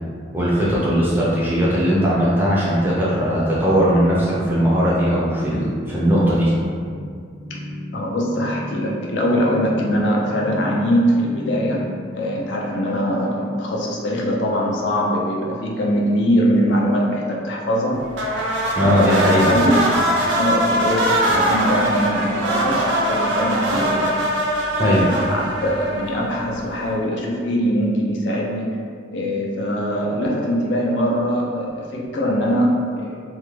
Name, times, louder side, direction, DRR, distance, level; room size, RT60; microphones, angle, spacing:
voice 1, 0.3-6.5 18.7-19.6 24.8-25.0, equal, 10° right, -7 dB, 0.4 m, -18 dB
sound 1, 6.8-12.1, left 1 dB, 55° left, 0.8 m, -34 dB
voice 2, 7.9-11.9 12.2-18.0 18.8-20.1 20.3-24.1 24.8-28.7 29.1-33.2, equal, 70° left, -2 dB, 0.4 m, -22 dB
sound 2, 18.1-26.6, right 1 dB, 80° right, 0.4 m, -22 dB
2.3 x 2.1 x 3.1 m, 2.2 s
head